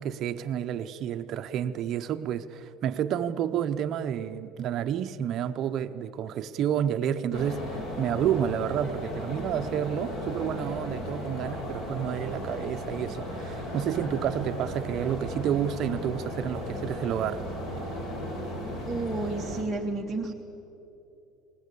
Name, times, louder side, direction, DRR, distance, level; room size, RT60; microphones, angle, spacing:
voice 1, 0.0-17.4, right 9 dB, 40° right, 9 dB, 0.7 m, -30 dB
sound 1, 7.3-19.6, equal, 45° left, 4.7 m, -35 dB
voice 2, 18.8-20.3, right 2 dB, 5° right, 1 dB, 0.9 m, -31 dB
26.0 x 19.5 x 8.4 m, 2.9 s
cardioid pair, 165°, 0 cm